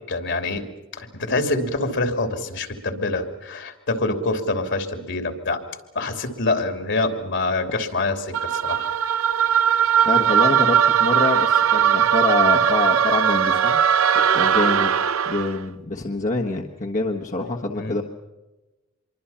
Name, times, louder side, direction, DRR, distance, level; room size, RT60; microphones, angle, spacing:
voice 1, 0.1-0.6 1.0-5.6 5.9-8.9 17.7-18.0, left 2 dB, 60° left, 6 dB, 3.0 m, -25 dB
sound 1, 8.3-15.6, right 8 dB, 85° right, 1.0 m, -19 dB
voice 2, 10.0-13.8 14.3-14.9 15.3-18.0, left 3 dB, 40° left, 1 dB, 1.4 m, -25 dB
26.5 x 23.5 x 5.8 m, 1.1 s
head